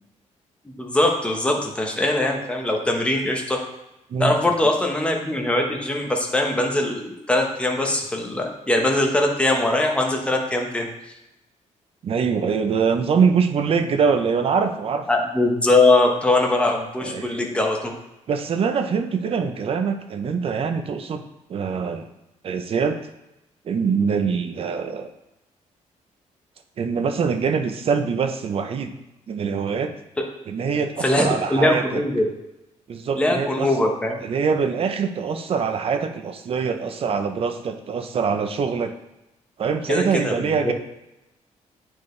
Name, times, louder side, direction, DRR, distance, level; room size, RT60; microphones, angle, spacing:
voice 1, 0.8-3.6 4.2-10.9 15.1-17.9 31.0-32.3 33.1-34.2 39.9-40.7, left 2 dB, 10° left, 1 dB, 0.9 m, -21 dB
voice 2, 12.0-15.1 17.0-17.4 18.3-21.2 21.5-22.1 22.4-23.0 23.6-25.1 26.8-28.9 29.3-29.9 30.5-32.0 32.9-33.7 34.2-38.9 39.6-40.7, right 6 dB, 50° right, 7 dB, 0.6 m, -23 dB
8.8 x 4.5 x 3.2 m, 0.92 s
cardioid pair, 145°, 13 cm